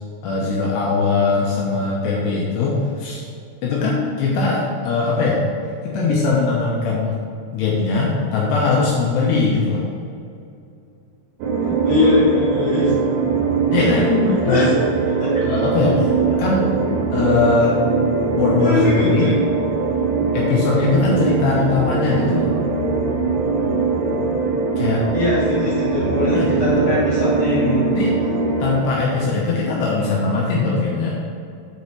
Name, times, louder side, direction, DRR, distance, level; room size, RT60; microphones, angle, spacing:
voice 1, 0.2-3.2 3.6-5.4 5.8-7.2 7.5-9.9 13.7-14.0 14.4-14.7 15.4-16.1 16.4-16.7 17.1-17.8 18.4-19.3 20.3-22.5 24.8-25.0 26.3-26.8 27.9-28.1 28.6-31.2, left 4 dB, 75° left, -4 dB, 2.8 m, -20 dB
sound 1, 11.4-28.8, right 4 dB, 80° right, 3.6 m, -21 dB
voice 2, 11.6-12.9 13.7-14.7 15.2-15.3 18.6-19.3 25.1-27.8, left 2 dB, 55° left, -12 dB, 2.9 m, -21 dB
8.1 x 4.8 x 5.5 m, 2.5 s
omnidirectional pair, 5.3 m